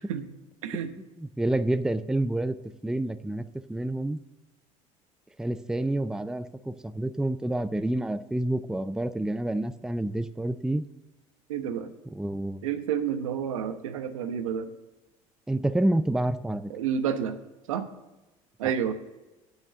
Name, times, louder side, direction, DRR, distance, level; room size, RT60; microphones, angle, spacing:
voice 1, 1.2-2.6 2.8-4.2 5.4-10.8 12.1-12.6 15.5-16.7, right 1 dB, 5° right, 11 dB, 0.5 m, -28 dB
voice 2, 11.5-11.9 12.6-14.7 16.7-17.3 17.7-17.9 18.6-18.9, right 8 dB, 85° right, 8 dB, 1.0 m, -29 dB
8.5 x 6.2 x 7.7 m, 1.0 s
hypercardioid pair, 80°, 17 cm